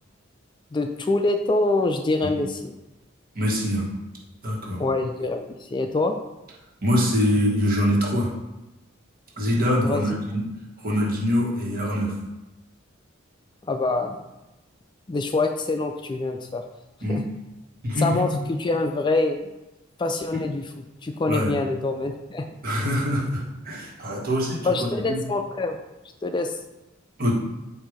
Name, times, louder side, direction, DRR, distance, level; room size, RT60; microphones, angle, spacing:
voice 1, 0.7-2.7 4.8-6.1 9.8-10.2 13.7-14.2 15.1-16.6 17.1-17.2 18.0-19.5 20.0-20.7 21.0-22.5 24.6-25.8 26.2-26.6, left 2 dB, 25° left, 5 dB, 0.3 m, -25 dB
voice 2, 3.3-3.9 4.4-4.8 6.8-8.3 9.4-10.5 10.8-12.1 17.0-17.2 17.8-18.2 20.3-20.4 21.3-21.5 22.6-25.2 27.2-27.3, equal, 45° right, -3 dB, 1.4 m, -24 dB
7.9 x 2.7 x 5.0 m, 1.0 s
head